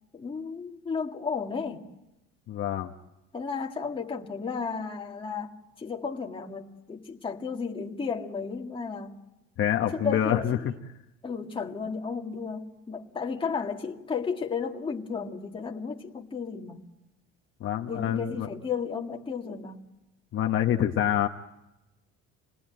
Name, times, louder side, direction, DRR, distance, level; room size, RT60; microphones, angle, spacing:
voice 1, 0.1-1.9 3.3-9.1 9.9-10.8 11.2-16.9 17.9-19.8, left 5 dB, 20° left, 2.1 m, -33 dB
voice 2, 2.5-2.9 9.6-10.6 17.6-18.5 20.3-21.3, left 10 dB, 45° left, 1.1 m, -26 dB
28.5 x 20.0 x 9.2 m
cardioid pair, 150°, 29 cm